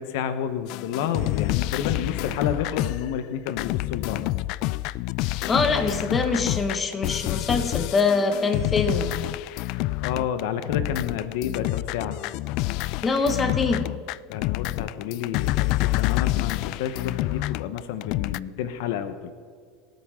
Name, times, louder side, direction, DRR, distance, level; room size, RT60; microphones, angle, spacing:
voice 1, 0.0-4.3 10.0-12.2 14.3-19.3, left 8 dB, 75° left, 11 dB, 0.9 m, -30 dB
sound 1, 0.7-18.4, left 18 dB, 60° left, 0.3 m, -28 dB
voice 2, 5.5-9.2 13.0-13.9, left 4 dB, 20° left, 6 dB, 1.5 m, -24 dB
27.0 x 9.2 x 3.7 m, 2.1 s
supercardioid pair, 125°, 0 cm